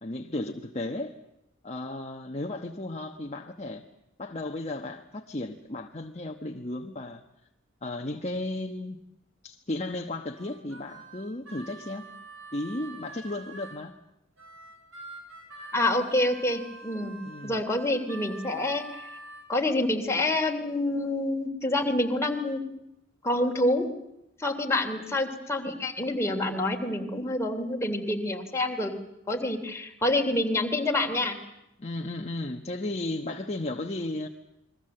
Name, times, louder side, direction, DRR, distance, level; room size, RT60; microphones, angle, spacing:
voice 1, 0.0-1.1 1.6-3.8 4.2-7.2 7.8-9.0 9.4-12.1 12.5-13.9 17.2-17.6 31.8-34.3, left 2 dB, 35° left, 3 dB, 1.2 m, -34 dB
Harmonica, 10.3-13.8 14.4-19.5, right 3 dB, 80° right, 8.0 m, -46 dB
voice 2, 15.7-17.2 17.4-18.8 19.5-22.7 23.2-23.9 24.4-28.9 29.3-31.4, left 1 dB, 15° left, 2 dB, 3.0 m, -27 dB
29.0 x 22.0 x 7.8 m, 0.84 s
head